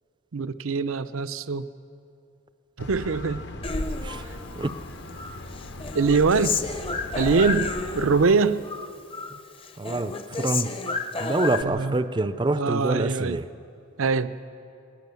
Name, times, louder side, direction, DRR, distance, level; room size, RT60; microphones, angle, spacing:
voice 1, 0.3-1.7 2.8-3.4 5.9-6.6 7.1-7.7 7.9-8.6 11.6-12.0 12.6-13.4 14.0-14.3, right 4 dB, 80° right, 13 dB, 0.6 m, -23 dB
sound 1, 2.8-8.3, left 1 dB, 55° left, 1.0 m, -37 dB
Human voice, 3.6-4.8 5.2-8.4 8.6-9.4 9.6-11.6, left 4 dB, 25° left, 0.7 m, -31 dB
voice 2, 9.8-10.8 11.2-13.5, right 2 dB, 20° right, 12 dB, 0.4 m, -26 dB
20.0 x 19.0 x 7.0 m, 2.7 s
head